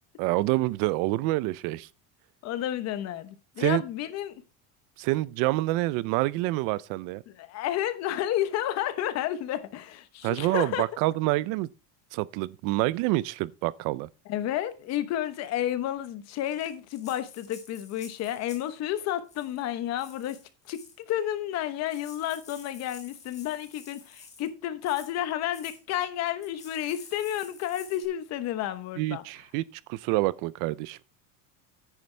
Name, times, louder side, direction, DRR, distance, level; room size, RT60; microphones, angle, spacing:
voice 1, 0.2-1.9 3.6-3.8 5.0-7.2 10.2-11.7 12.1-14.1 29.0-31.0, right 19 dB, 60° right, 0.5 m, -27 dB
voice 2, 2.4-4.4 7.3-10.9 14.3-20.4 20.7-29.2, left 12 dB, 45° left, 1.1 m, -31 dB
Rattle (instrument), 16.5-18.7 19.2-19.6 20.0-21.0 21.6-21.7 21.9-24.5 24.8-25.1 25.5-25.8 26.4-28.1, left 4 dB, 20° left, 2.1 m, -50 dB
9.6 x 9.5 x 3.3 m
cardioid pair, 160°, 37 cm